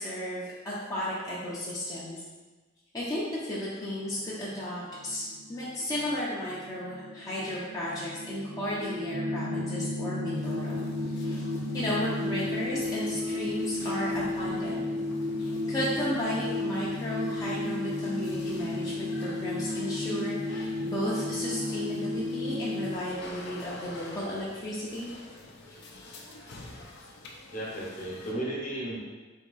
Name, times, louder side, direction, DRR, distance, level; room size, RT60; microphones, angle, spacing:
voice 1, 0.0-2.2 2.9-10.8 11.2-11.4 11.7-14.8 15.4-25.2, left 1 dB, 20° left, -9 dB, 0.6 m, -34 dB
sound 1, 4.0-22.9, left 2 dB, 40° right, 0.5 m, -33 dB
sound 2, 10.3-28.3, left 2 dB, 60° left, 0.5 m, -48 dB
voice 2, 27.5-29.0, right 1 dB, 40° left, -4 dB, 0.9 m, -34 dB
3.5 x 2.8 x 3.9 m, 1.3 s
head